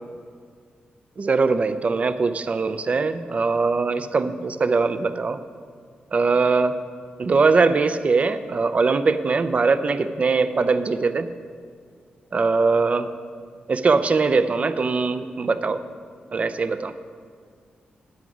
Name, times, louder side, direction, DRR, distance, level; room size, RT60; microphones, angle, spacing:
voice 1, 1.2-5.4 6.1-6.7 7.2-11.3 12.3-13.1 13.7-15.8 16.3-16.9, right 4 dB, 40° right, 11 dB, 0.4 m, -21 dB
9.6 x 4.9 x 7.8 m, 2.1 s
cardioid pair, 95°, 3 cm